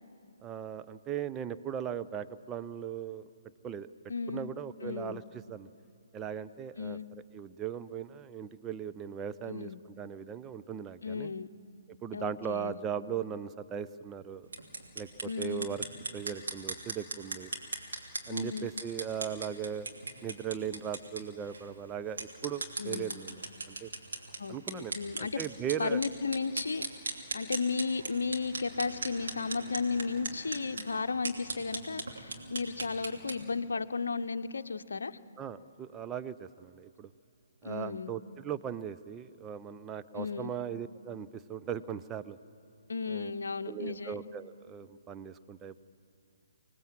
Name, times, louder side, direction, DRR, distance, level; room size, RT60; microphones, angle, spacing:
voice 1, 0.4-3.3 3.6-3.9 4.3-5.7 6.1-11.3 12.0-14.5 15.0-15.8 16.1-17.5 18.3-19.9 20.2-23.4 23.7-23.9 24.5-26.0 35.4-37.1 37.6-42.4 43.1-43.3 43.7-45.8, right 8 dB, 15° right, 10 dB, 0.6 m, -38 dB
voice 2, 4.1-4.5 4.8-5.2 6.8-7.1 9.5-9.8 11.0-11.5 12.1-12.8 15.3-15.7 18.3-18.7 22.8-23.2 24.4-25.4 25.8-35.2 37.6-38.1 40.1-40.6 42.9-44.2, left 4 dB, 65° left, 10 dB, 0.8 m, -34 dB
sound 1, 14.4-33.4, right 3 dB, 60° right, 3.1 m, -40 dB
26.0 x 19.0 x 7.6 m, 2.6 s
figure-of-eight pair, 130°, 0 cm